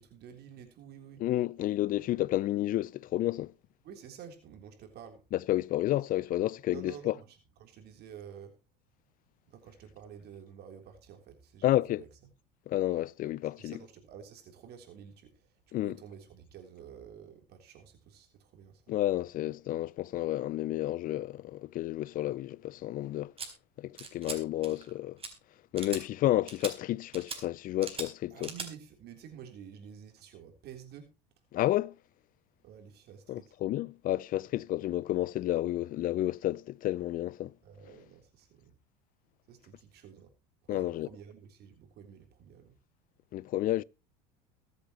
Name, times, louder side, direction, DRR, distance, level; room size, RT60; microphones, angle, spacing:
voice 1, 0.0-1.2 3.8-5.2 6.7-8.6 9.5-12.1 13.6-15.5 15.8-18.8 28.3-31.1 32.6-33.6 37.6-38.7 39.5-40.3 40.6-42.8, right 8 dB, 50° right, 3.5 m, -50 dB
voice 2, 1.2-3.5 5.3-7.1 11.6-12.0 12.7-13.7 15.7-16.0 18.9-23.3 23.8-25.2 25.7-28.5 31.5-31.9 33.3-37.5 40.7-41.1 43.3-43.8, left 14 dB, 40° left, 0.6 m, -31 dB
sound 1, 23.4-23.5 24.0-24.4 24.6-24.9 25.2-25.3 25.8-26.0 26.5-26.7 27.1-27.4 27.8-28.1 28.4-28.7, right 5 dB, 25° right, 4.2 m, -39 dB
22.5 x 8.3 x 3.0 m
hypercardioid pair, 80°, 21 cm